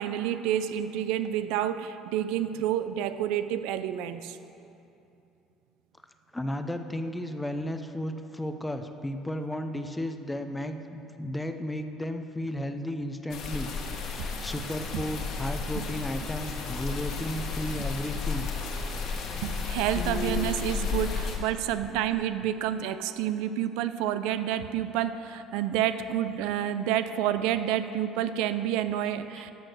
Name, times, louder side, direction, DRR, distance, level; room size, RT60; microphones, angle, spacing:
voice 1, 0.0-4.4 14.2-14.3 15.7-15.8 17.8-17.9 19.4-29.5, right 11 dB, 85° right, 12 dB, 0.4 m, -29 dB
voice 2, 6.3-18.5 19.3-19.4, left 1 dB, 10° left, 7 dB, 0.6 m, -34 dB
sound 1, 13.3-21.4, left 5 dB, 60° left, 1.5 m, -33 dB
sound 2, 20.0-21.0, left 4 dB, 30° left, 1.1 m, -36 dB
12.0 x 6.3 x 6.5 m, 2.8 s
cardioid pair, 135°, 0 cm